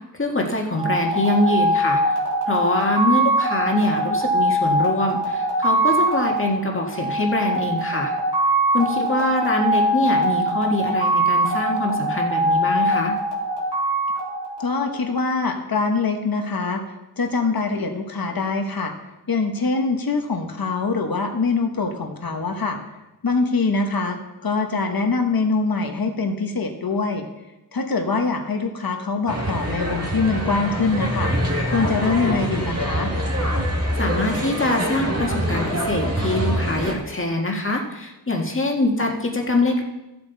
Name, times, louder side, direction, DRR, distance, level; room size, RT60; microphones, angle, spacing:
voice 1, 0.2-2.0 2.5-8.1 8.7-13.1 34.0-39.8, left 2 dB, 30° left, 1 dB, 1.8 m, -24 dB
sound 1, 0.8-15.2, right 1 dB, 80° right, 3.0 m, -22 dB
voice 2, 14.6-16.8 17.2-18.9 19.3-22.8 23.2-27.3 27.7-31.3 31.6-33.1, left 4 dB, 60° left, 4 dB, 1.5 m, -23 dB
sound 2, 29.3-36.9, equal, 35° right, 2.0 m, -24 dB
14.5 x 7.9 x 4.1 m, 1.0 s
wide cardioid pair, 90°, 41 cm